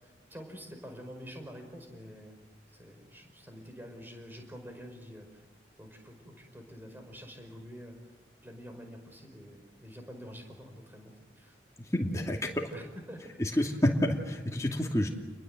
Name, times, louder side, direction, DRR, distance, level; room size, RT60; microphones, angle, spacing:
voice 1, 0.0-2.4 2.7-5.5 5.8-8.1 8.4-11.6 12.7-13.8 14.8-14.9, equal, 10° right, 4 dB, 5.1 m, -47 dB
voice 2, 11.9-12.7 13.4-15.1, left 1 dB, 15° left, 0 dB, 2.6 m, -28 dB
29.0 x 21.5 x 7.9 m, 1.2 s
head